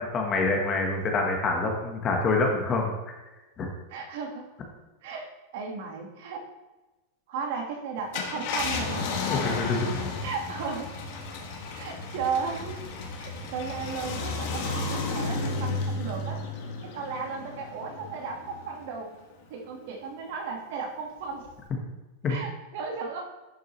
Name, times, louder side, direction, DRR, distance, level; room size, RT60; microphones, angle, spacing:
voice 1, 0.0-3.1 3.6-3.7 9.3-10.0 22.2-22.4, left 3 dB, 20° left, 2 dB, 1.1 m, -26 dB
voice 2, 3.9-4.4 5.0-6.5 7.3-9.1 10.2-10.9 11.7-12.8 13.2-16.4 16.8-19.1 19.5-21.5 22.3-23.2, right 5 dB, 55° right, 2 dB, 1.4 m, -35 dB
Car, 8.0-18.8 19.3-19.4 21.4-21.7, left 3 dB, 45° left, 1.3 m, -33 dB
11.0 x 5.9 x 3.1 m, 1.1 s
supercardioid pair, 170°, 0 cm